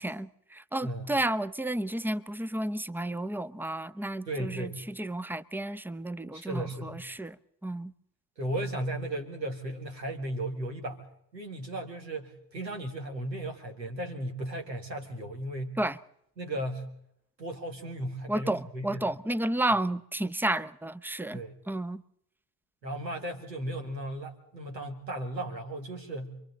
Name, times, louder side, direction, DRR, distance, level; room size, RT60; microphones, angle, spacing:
voice 1, 0.0-7.4 7.6-7.9 15.8-16.0 18.3-21.4 21.7-22.0, right 1 dB, 5° right, 0.7 m, -32 dB
voice 2, 4.3-4.8 6.3-7.0 8.4-11.1 11.3-15.8 16.4-16.9 17.4-19.1 21.3-21.6 22.8-26.4, right 1 dB, 90° right, 1.9 m, -35 dB
28.0 x 23.5 x 3.9 m
figure-of-eight pair, 50°, 50 cm